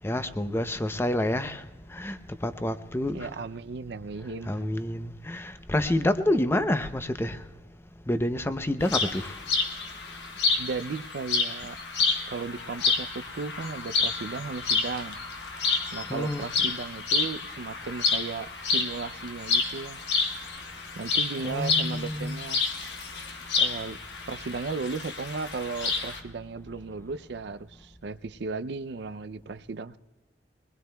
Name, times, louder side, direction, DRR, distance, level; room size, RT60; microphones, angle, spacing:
voice 1, 0.0-1.6 1.9-2.2 2.4-3.2 4.5-7.4 8.1-9.3 16.1-16.4 21.4-22.4, left 1 dB, 15° left, 10 dB, 0.6 m, -28 dB
voice 2, 3.1-4.6 10.6-11.8 12.3-15.2 15.9-20.0 21.0-22.6 23.6-24.0 24.3-30.0, right 4 dB, 65° right, 13 dB, 0.5 m, -35 dB
sound 1, 8.8-26.2, left 4 dB, 70° left, 1.3 m, -29 dB
22.5 x 20.5 x 2.3 m, 1.2 s
head